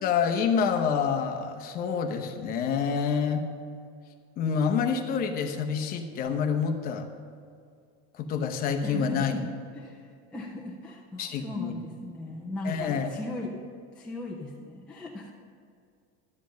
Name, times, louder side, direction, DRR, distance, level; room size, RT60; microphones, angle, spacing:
voice 1, 0.0-3.5 4.4-7.1 8.2-9.4 11.2-11.7 12.6-13.1, left 6 dB, 25° left, 4 dB, 0.8 m, -27 dB
voice 2, 8.8-9.5 9.8-13.5 14.0-15.3, left 2 dB, 5° left, -3 dB, 0.3 m, -38 dB
11.5 x 7.6 x 6.3 m, 2.3 s
cardioid pair, 175°, 34 cm